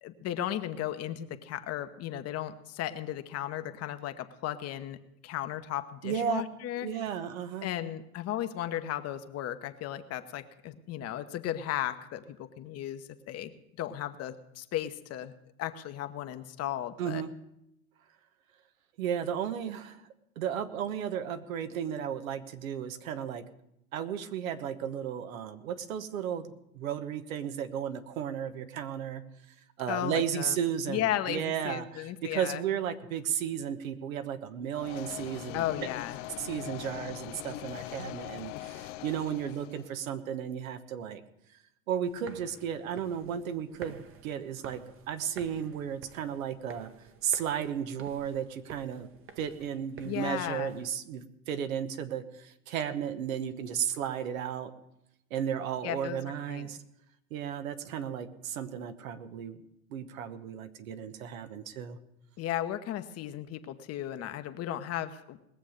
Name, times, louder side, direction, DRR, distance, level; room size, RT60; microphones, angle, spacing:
voice 1, 0.0-5.0 5.2-6.9 7.6-15.3 15.6-17.2 29.9-30.6 30.9-32.6 35.5-36.2 50.0-50.8 55.8-56.2 56.5-56.7 62.4-65.5, left 12 dB, 35° left, 9 dB, 1.0 m, -35 dB
voice 2, 6.0-6.4 6.8-7.7 17.0-17.3 19.0-20.0 20.4-23.5 23.9-29.2 29.8-35.6 36.4-41.2 41.9-46.9 47.2-49.1 49.4-54.7 55.3-56.8 57.3-59.6 59.9-62.0, right 8 dB, 70° right, 9 dB, 1.3 m, -34 dB
sound 1, 34.7-39.9, left 15 dB, 55° left, 0.7 m, -42 dB
sound 2, 42.1-50.9, right 6 dB, 30° right, 1.2 m, -51 dB
20.0 x 7.1 x 6.5 m, 0.82 s
hypercardioid pair, 105°, 42 cm